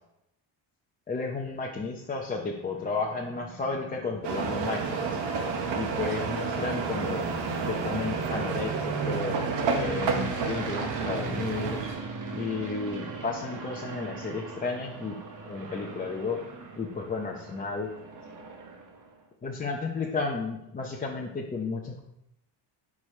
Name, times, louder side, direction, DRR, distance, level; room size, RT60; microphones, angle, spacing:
voice 1, 1.1-5.2 5.7-7.2 7.7-9.4 9.7-11.8 12.3-15.2 15.4-16.4 16.7-17.9 19.4-22.0, left 4 dB, 20° left, -1 dB, 0.6 m, -33 dB
sound 1, 2.0-19.1, right 3 dB, 40° right, 1.1 m, -38 dB
sound 2, 4.2-12.0, right 5 dB, 60° right, 1.1 m, -31 dB
6.7 x 4.8 x 4.3 m, 0.83 s
cardioid pair, 140°, 48 cm